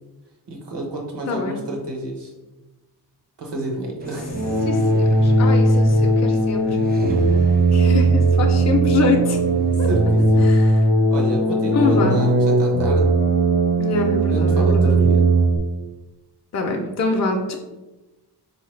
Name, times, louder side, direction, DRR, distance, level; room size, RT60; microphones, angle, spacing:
voice 1, 0.5-2.3 3.4-4.3 6.9-7.2 9.9-10.0 10.3-10.5 11.1-13.2 14.3-15.3, right 1 dB, 80° right, 0 dB, 1.0 m, -29 dB
voice 2, 1.3-1.6 4.7-6.8 7.7-9.4 9.8-9.9 10.4-10.9 11.7-12.2 13.8-15.0 16.5-17.6, left 3 dB, 40° left, 2 dB, 0.4 m, -24 dB
sound 1, 4.0-10.4, right 4 dB, 25° right, 0.4 m, -35 dB
sound 2, 4.3-15.6, right 2 dB, 55° right, 0.7 m, -18 dB
4.1 x 2.8 x 3.1 m, 1.1 s
wide cardioid pair, 90°, 41 cm